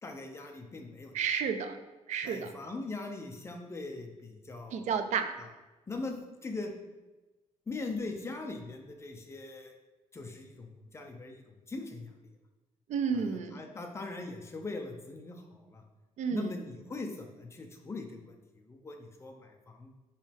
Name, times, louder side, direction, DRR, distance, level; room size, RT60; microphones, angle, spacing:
voice 1, 0.0-1.2 2.2-4.9 5.4-5.5 5.9-6.7 7.7-9.7 10.1-12.1 13.1-15.8 16.3-19.9, left 3 dB, 20° left, 3 dB, 0.8 m, -41 dB
voice 2, 1.1-1.8 2.1-2.5 4.7-5.3 12.9-13.6 16.2-16.5, right 6 dB, 75° right, 8 dB, 0.6 m, -31 dB
5.4 x 5.3 x 3.5 m, 1.1 s
cardioid pair, 130°, 12 cm